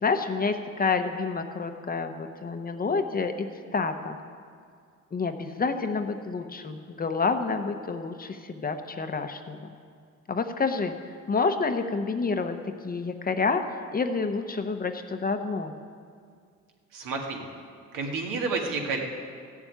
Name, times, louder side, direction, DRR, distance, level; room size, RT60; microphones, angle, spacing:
voice 1, 0.0-3.5 3.7-4.2 5.1-9.7 10.3-10.9 11.3-12.6 12.8-15.7, left 4 dB, 25° left, 7 dB, 0.8 m, -28 dB
voice 2, 16.9-17.5 17.9-19.0, right 4 dB, 75° right, 1 dB, 2.2 m, -30 dB
14.5 x 7.3 x 9.0 m, 2.2 s
cardioid pair, 120°, 32 cm